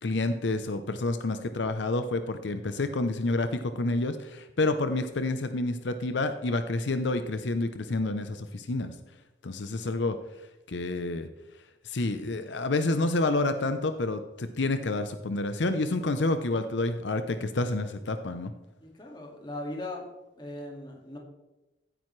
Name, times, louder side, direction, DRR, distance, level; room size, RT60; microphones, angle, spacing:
voice 1, 0.0-9.0 9.4-10.2 10.7-11.3 11.8-18.5, left 2 dB, 75° left, 9 dB, 0.7 m, -29 dB
voice 2, 18.8-20.1 20.4-21.2, left 1 dB, 25° left, 0 dB, 2.0 m, -39 dB
15.5 x 8.9 x 3.2 m, 1.1 s
head